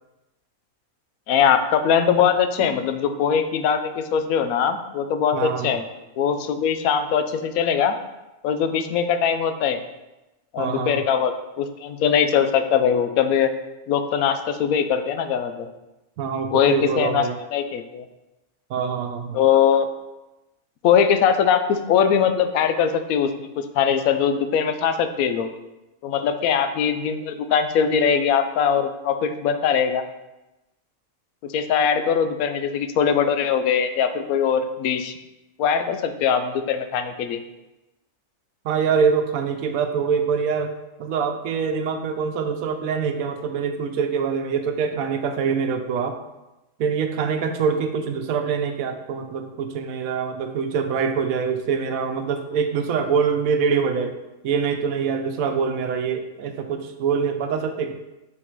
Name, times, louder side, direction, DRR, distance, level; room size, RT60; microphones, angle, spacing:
voice 1, 1.3-5.8 6.2-8.0 8.4-9.8 10.5-13.5 13.9-15.7 16.5-17.2 17.5-18.0 19.3-19.9 20.8-25.5 26.0-30.0 31.5-35.2 35.6-37.4, left 7 dB, 85° left, 9 dB, 1.0 m, -21 dB
voice 2, 5.3-5.7 10.6-11.0 16.2-17.4 18.7-19.4 38.6-40.7 41.0-46.2 46.8-54.1 54.4-57.9, right 6 dB, 80° right, 6 dB, 1.1 m, -24 dB
6.2 x 3.8 x 4.5 m, 1.0 s
omnidirectional pair, 1.5 m